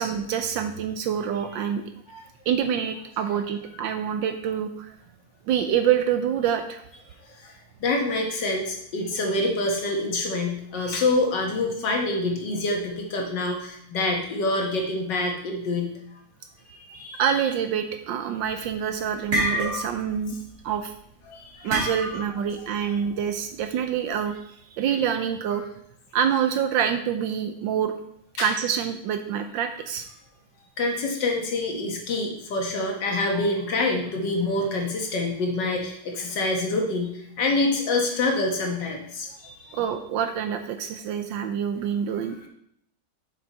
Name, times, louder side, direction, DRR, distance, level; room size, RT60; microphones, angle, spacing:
voice 1, 0.0-1.8 2.5-4.9 5.5-6.8 10.8-11.0 17.2-20.4 20.6-20.9 21.6-25.6 26.1-27.9 28.4-30.0 39.7-42.5, right 8 dB, 75° right, 7 dB, 1.2 m, -26 dB
voice 2, 7.8-15.9 16.8-17.2 21.3-21.7 28.4-28.5 30.8-39.8, left 2 dB, 60° left, 1 dB, 1.8 m, -26 dB
sound 1, 18.4-18.7 19.1-20.1 20.4-20.7 21.7-22.4, equal, 45° right, 2.4 m, -27 dB
7.1 x 6.2 x 4.1 m, 0.70 s
omnidirectional pair, 2.3 m